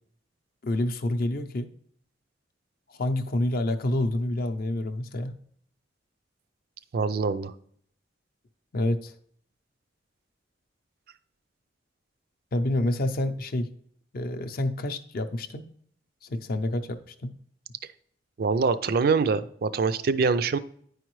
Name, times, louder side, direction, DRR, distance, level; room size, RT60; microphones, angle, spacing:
voice 1, 0.6-1.7 2.9-5.3 8.7-9.1 12.5-13.7 14.1-15.6 16.2-17.3, left 1 dB, 55° left, 8 dB, 0.5 m, -28 dB
voice 2, 6.9-7.5 18.4-20.6, right 4 dB, 55° right, 14 dB, 0.4 m, -24 dB
9.6 x 4.9 x 3.1 m, 0.63 s
head